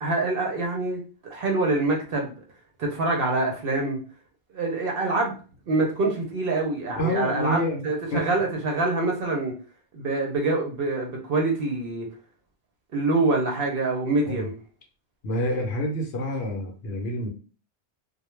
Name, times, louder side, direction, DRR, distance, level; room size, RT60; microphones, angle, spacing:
voice 1, 0.0-2.3 2.8-4.0 4.5-5.3 5.7-9.5 9.9-12.1 12.9-14.6, right 2 dB, 60° right, 1 dB, 0.7 m, -25 dB
voice 2, 7.0-8.2 14.3-14.5 15.2-17.3, equal, 65° left, 3 dB, 0.8 m, -27 dB
2.2 x 2.1 x 3.0 m, 0.37 s
omnidirectional pair, 1.2 m